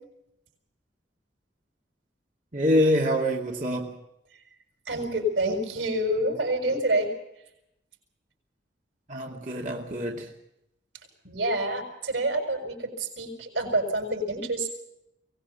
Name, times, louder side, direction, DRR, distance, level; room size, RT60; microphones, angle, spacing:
voice 1, 2.5-3.9 9.1-10.3, equal, 45° right, 0 dB, 2.5 m, -25 dB
voice 2, 4.9-7.1 11.2-14.7, right 1 dB, 90° right, 5 dB, 6.8 m, -27 dB
23.5 x 19.5 x 7.0 m, 0.81 s
head